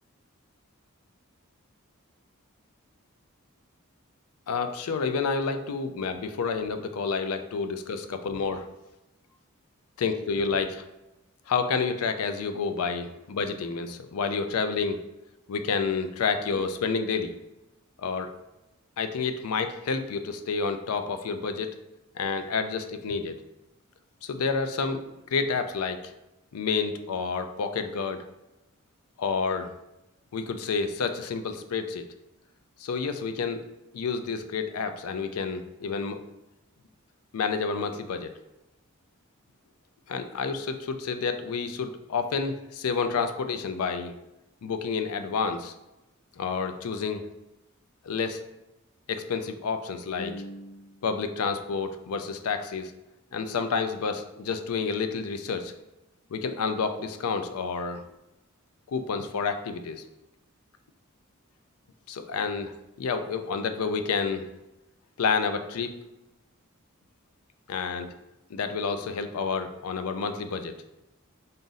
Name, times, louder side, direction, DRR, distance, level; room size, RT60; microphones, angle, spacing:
voice 1, 4.5-8.7 10.0-10.9 11.5-15.0 15.5-17.4 18.0-18.3 19.0-21.7 22.2-23.4 24.2-25.0 25.3-26.1 26.5-28.3 29.2-29.7 30.3-32.1 32.8-33.6 33.9-36.2 37.3-38.3 40.1-44.1 44.6-45.7 46.4-47.2 48.0-48.4 49.1-52.9 53.3-55.7 56.3-58.0 58.9-60.0 62.1-64.4 65.2-65.9 67.7-68.1 68.5-70.7, left 5 dB, 85° left, 9 dB, 0.4 m, -29 dB
3.9 x 2.5 x 3.9 m, 0.95 s
head